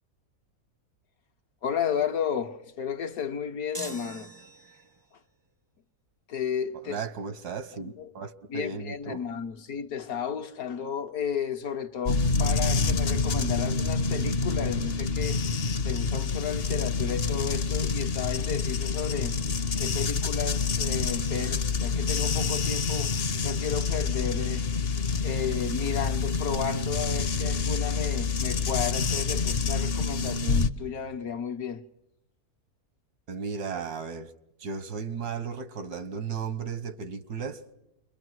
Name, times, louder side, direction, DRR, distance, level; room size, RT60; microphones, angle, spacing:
voice 1, 1.6-4.3 6.3-7.0 7.5-7.6 7.8-8.1 8.5-19.4 19.8-24.7 25.2-31.8, left 7 dB, 70° left, 1.6 m, -33 dB
sound 1, 3.7-5.1, right 2 dB, 20° right, 0.6 m, -41 dB
voice 2, 6.8-9.2 33.3-34.3 34.6-37.7, right 5 dB, 90° right, 1.8 m, -35 dB
sound 2, 12.1-30.7, left 4 dB, 45° left, 1.0 m, -27 dB
28.0 x 22.5 x 6.2 m
omnidirectional pair, 1.6 m